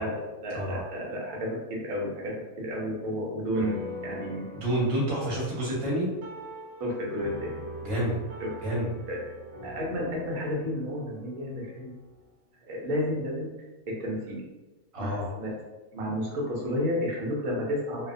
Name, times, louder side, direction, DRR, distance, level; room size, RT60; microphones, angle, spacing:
voice 1, 0.0-4.4 6.8-7.6 8.4-8.5 9.1-9.2 9.6-11.9 12.7-13.5 13.9-14.4 15.0-15.6 15.9-18.1, equal, 90° right, -3 dB, 1.2 m, -31 dB
sound 1, 3.6-12.3, equal, 65° right, 0.5 m, -43 dB
voice 2, 4.5-6.1 7.8-8.1 8.6-8.9 14.9-15.3, right 1 dB, 30° right, -6 dB, 0.7 m, -28 dB
2.7 x 2.1 x 2.5 m, 1.1 s
omnidirectional pair, 1.5 m